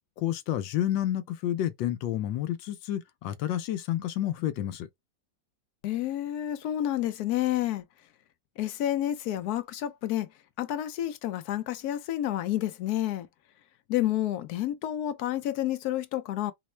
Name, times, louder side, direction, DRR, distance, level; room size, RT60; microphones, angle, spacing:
voice 1, 0.2-4.9, left 12 dB, 85° left, 1.3 m, -30 dB
voice 2, 5.8-7.8 8.6-10.3 10.6-13.3 13.9-16.5, left 13 dB, 70° left, 1.0 m, -29 dB
4.2 x 2.1 x 3.1 m
omnidirectional pair, 2.0 m